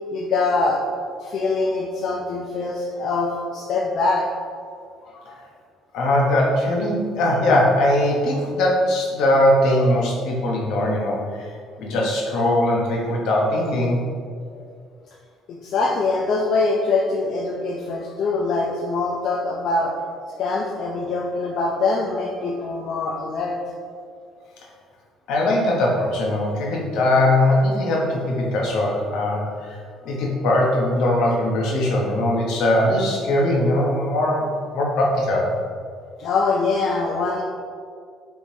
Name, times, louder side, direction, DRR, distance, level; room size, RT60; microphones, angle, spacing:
voice 1, 0.1-0.8 1.2-4.3 5.0-5.4 13.3-13.4 14.5-14.7 15.5-19.9 20.4-23.6 36.2-37.4, left 3 dB, 50° left, -2 dB, 0.4 m, -23 dB
voice 2, 5.9-11.5 11.8-14.0 25.3-29.8 30.0-35.5, left 1 dB, 70° left, -2 dB, 0.8 m, -20 dB
4.5 x 3.6 x 2.7 m, 2.2 s
cardioid pair, 165°, 0 cm